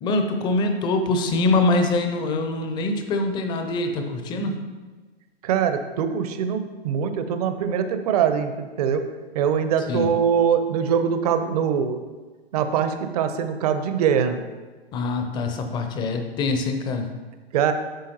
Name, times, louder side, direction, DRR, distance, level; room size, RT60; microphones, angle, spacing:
voice 1, 0.0-4.6 9.9-10.1 14.9-17.1, left 2 dB, 15° left, 6 dB, 0.6 m, -24 dB
voice 2, 5.4-9.0 9.3-12.0 12.5-14.4 17.5-17.7, right 7 dB, 40° right, 9 dB, 0.8 m, -23 dB
10.0 x 7.4 x 2.9 m, 1.3 s
figure-of-eight pair, 120°, 32 cm